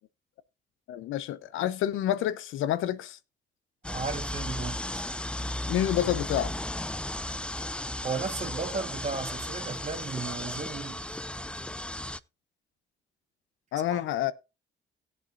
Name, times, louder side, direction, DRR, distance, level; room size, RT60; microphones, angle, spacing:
voice 1, 0.9-3.2 5.7-6.5 13.7-14.3, left 12 dB, 85° left, 0.8 m, -28 dB
sound 1, 3.8-12.2, left 1 dB, 5° left, 0.4 m, -35 dB
voice 2, 3.9-5.0 8.0-11.2 13.9-14.1, right 4 dB, 35° right, 1.5 m, -35 dB
17.5 x 7.8 x 2.6 m
cardioid pair, 90°, 20 cm